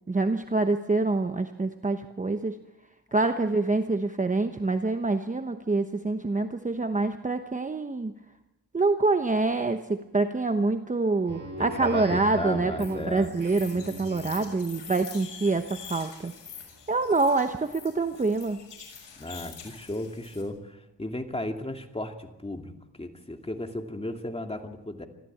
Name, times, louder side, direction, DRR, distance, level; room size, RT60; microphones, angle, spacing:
voice 1, 0.1-2.6 3.1-8.1 8.7-16.3 16.9-18.6, right 3 dB, 20° right, 7 dB, 1.0 m, -26 dB
Speech synthesizer, 11.2-14.6, equal, 45° right, 6.1 m, -41 dB
voice 2, 11.6-13.3 19.2-22.7 23.0-25.1, left 1 dB, 15° left, 4 dB, 2.5 m, -35 dB
sound 1, 12.8-20.4, left 7 dB, 75° left, 6.6 m, -45 dB
25.0 x 14.5 x 8.6 m, 0.97 s
cardioid pair, 95°, 43 cm